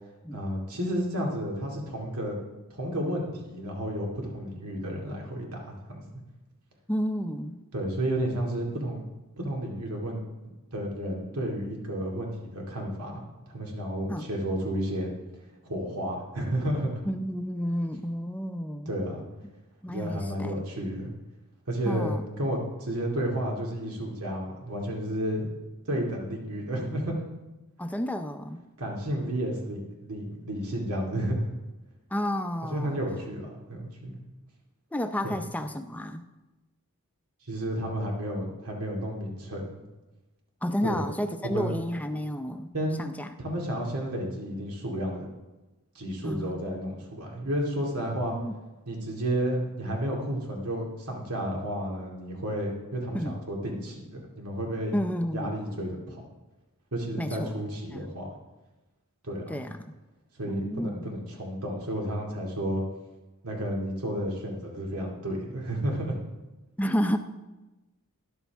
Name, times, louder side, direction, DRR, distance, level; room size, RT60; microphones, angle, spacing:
voice 1, 0.3-2.4 2.8-5.5 5.9-6.0 7.7-9.0 9.4-10.2 10.7-13.1 13.5-15.1 15.7-17.0 18.9-19.2 19.9-21.1 21.7-25.5 25.8-27.2 28.8-31.5 32.7-34.2 35.2-35.3 37.5-39.8 40.8-41.0 41.4-41.7 42.7-43.0 43.4-45.3 45.9-48.4 48.9-55.0 55.3-56.2 56.9-58.3 59.2-59.6 60.4-62.8 63.4-66.1, right 1 dB, 90° right, -1 dB, 2.3 m, -31 dB
voice 2, 6.9-7.6 14.1-14.3 17.1-18.9 19.8-20.6 21.8-22.2 27.8-28.6 29.2-29.3 32.1-33.0 34.9-36.2 40.6-42.7 43.0-43.3 46.2-46.6 48.3-48.5 53.1-53.4 54.9-55.6 57.2-57.5 57.9-58.1 59.5-59.8 60.5-61.0 66.8-67.2, equal, 5° left, 7 dB, 0.5 m, -31 dB
12.5 x 11.0 x 3.5 m, 1.1 s
head